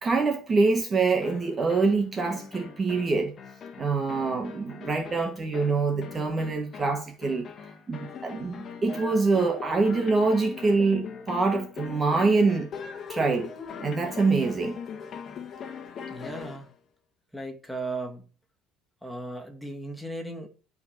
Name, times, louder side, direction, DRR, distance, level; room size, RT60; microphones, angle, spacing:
voice 1, 0.0-3.3 3.8-7.5 7.9-12.7 13.1-13.5 13.8-14.8, right 3 dB, 25° right, 1.4 m, -25 dB
sound 1, 1.2-16.7, left 6 dB, 35° left, 1.7 m, -41 dB
voice 2, 16.1-16.7 17.3-18.3 19.0-20.5, right 2 dB, ahead, 2.2 m, -36 dB
12.5 x 5.4 x 7.3 m
cardioid pair, 145°, 0 cm